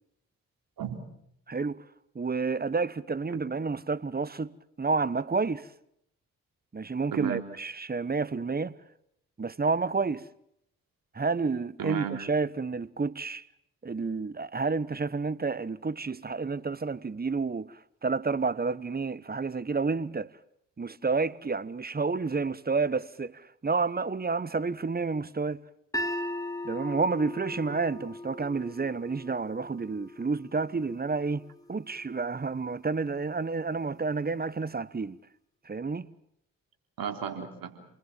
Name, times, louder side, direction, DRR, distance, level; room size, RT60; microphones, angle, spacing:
voice 1, 0.8-1.1 3.3-3.4 7.1-7.4 11.8-12.3 27.7-27.8 37.0-37.9, right 8 dB, 70° right, 3.6 m, -34 dB
voice 2, 1.5-1.8 2.1-4.5 4.8-5.7 6.7-8.7 9.4-10.3 11.1-13.4 13.8-20.3 20.8-25.6 26.6-31.4 31.7-35.2 35.6-36.1, right 4 dB, 25° right, 1.1 m, -30 dB
sound 1, 25.9-32.1, left 1 dB, 10° left, 2.6 m, -39 dB
28.0 x 21.0 x 7.5 m
hypercardioid pair, 40°, 36 cm